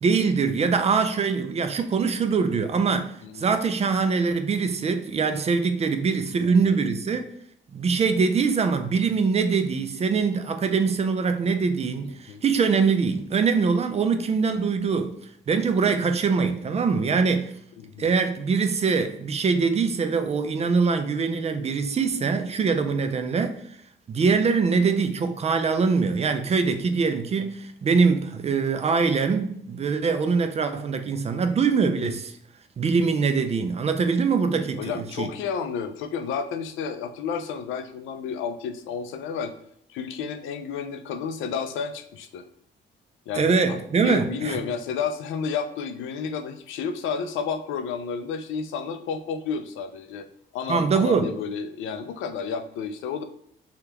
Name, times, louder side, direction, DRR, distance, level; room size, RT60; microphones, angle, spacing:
voice 1, 0.0-7.3 7.7-15.2 15.5-17.5 18.0-23.6 24.1-32.3 32.8-35.3 43.3-44.6 50.7-51.3, right 5 dB, 35° right, 0.4 m, -23 dB
voice 2, 3.2-3.5 6.4-6.7 12.3-12.4 17.8-18.1 34.8-39.5 39.9-42.4 43.3-50.3 50.5-53.2, left 6 dB, 85° left, 0.4 m, -31 dB
3.4 x 2.3 x 2.9 m
cardioid pair, 90°, 20 cm